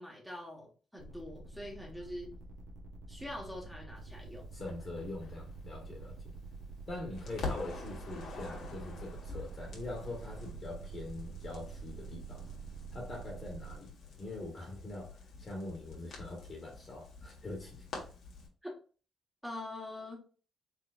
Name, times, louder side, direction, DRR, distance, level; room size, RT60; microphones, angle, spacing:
voice 1, 0.0-2.3 3.1-4.5 18.6-18.7 19.4-20.2, left 1 dB, 5° right, 1.3 m, -44 dB
sound 1, 1.0-13.8, right 5 dB, 70° right, 1.2 m, -47 dB
voice 2, 4.5-6.2 6.9-12.5 12.9-17.9, left 2 dB, 35° left, 1.4 m, -43 dB
Crackle, 4.7-6.8 7.1-18.5, left 4 dB, 70° left, 1.5 m, -46 dB
4.6 x 3.6 x 2.5 m
cardioid pair, 90°, 0 cm